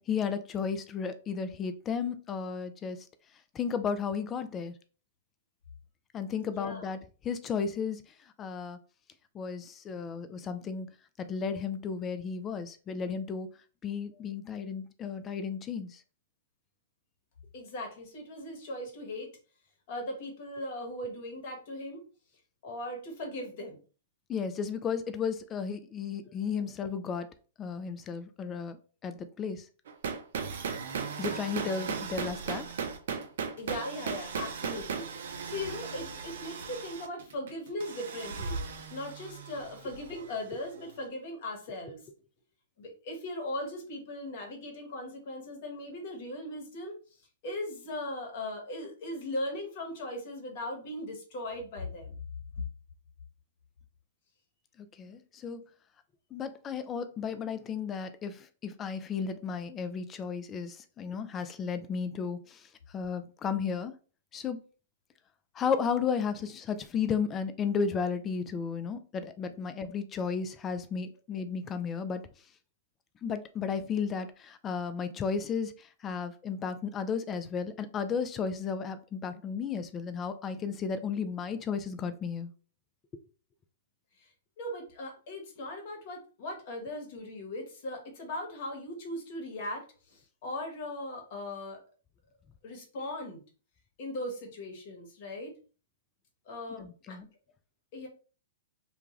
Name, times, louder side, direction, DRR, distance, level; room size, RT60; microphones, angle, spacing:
voice 1, 0.0-3.0 3.5-4.7 6.1-7.0 7.2-8.0 8.4-8.8 9.3-10.9 11.2-13.5 13.8-16.0 24.3-27.3 27.6-29.6 31.2-32.7 55.0-55.6 56.3-62.6 62.9-63.9 64.3-64.6 65.6-72.2 73.2-82.5 96.8-97.3, left 6 dB, 25° left, 0.4 m, -34 dB
voice 2, 6.6-6.9 17.5-19.3 19.9-22.0 22.6-23.8 33.6-42.0 42.8-47.0 47.4-52.1 84.2-84.3 84.6-91.8 92.6-93.4 94.0-95.5 96.5-97.2 97.9-98.1, left 1 dB, 50° left, 1.1 m, -39 dB
sound 1, 29.9-40.7, right 6 dB, 65° right, 0.5 m, -37 dB
2.4 x 2.3 x 3.1 m
hypercardioid pair, 115°, 0 cm